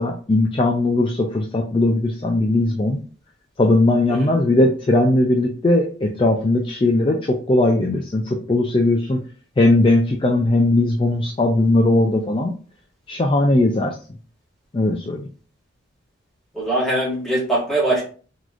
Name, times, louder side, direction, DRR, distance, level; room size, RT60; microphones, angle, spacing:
voice 1, 0.0-3.0 3.6-9.2 9.6-12.5 13.1-14.0 14.7-15.3, left 2 dB, 25° left, 1 dB, 0.3 m, -18 dB
voice 2, 16.5-18.0, right 1 dB, ahead, -6 dB, 1.5 m, -21 dB
3.9 x 3.0 x 2.5 m, 0.40 s
head